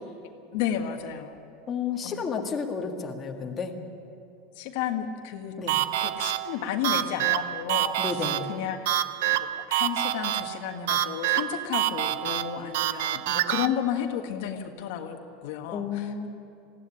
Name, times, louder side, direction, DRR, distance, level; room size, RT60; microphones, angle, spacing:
voice 1, 0.5-1.3 2.0-2.1 4.6-5.6 6.0-7.9 8.5-8.8 9.3-9.4 9.7-15.8, left 9 dB, 65° left, 4 dB, 1.6 m, -32 dB
voice 2, 1.7-3.8 5.6-5.8 8.0-8.5 15.7-16.3, left 6 dB, 20° left, 1 dB, 1.8 m, -32 dB
sound 1, 5.7-13.7, right 13 dB, 70° right, 0.7 m, -27 dB
20.5 x 15.5 x 9.9 m, 2.7 s
supercardioid pair, 150°, 0 cm